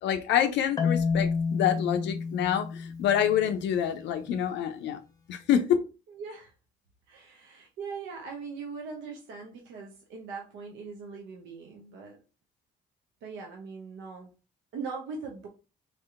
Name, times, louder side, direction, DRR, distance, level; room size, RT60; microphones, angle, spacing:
voice 1, 0.0-5.0 5.3-5.6, left 9 dB, 70° left, 0.4 m, -27 dB
Marimba xylophone, 0.8-3.7, left 5 dB, 20° left, 0.8 m, -30 dB
voice 2, 6.1-6.5 7.1-12.2 13.2-14.3 14.7-15.5, right 5 dB, 80° right, 0.6 m, -40 dB
3.4 x 2.7 x 2.4 m
supercardioid pair, 55°, 19 cm